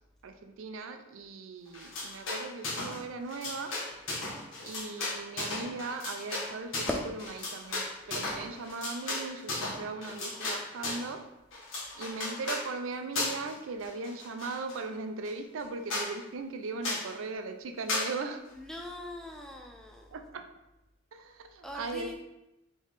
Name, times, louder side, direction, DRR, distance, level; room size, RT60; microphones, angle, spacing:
voice 1, 0.2-3.7 4.6-6.9 7.5-11.2 11.9-18.4 20.1-20.4 21.1-22.2, right 4 dB, 85° right, 6 dB, 0.4 m, -38 dB
sound 1, 1.7-3.0 3.3-11.1 11.5-12.7 13.1-13.5 13.8-14.8 15.2-15.3 15.6-15.7 15.9-16.1 16.8-17.1 17.9-18.1, left 2 dB, 80° left, 1.1 m, -35 dB
voice 2, 18.5-20.1 21.6-22.2, left 1 dB, 5° left, 1 dB, 0.4 m, -39 dB
3.5 x 3.0 x 3.9 m, 0.93 s
head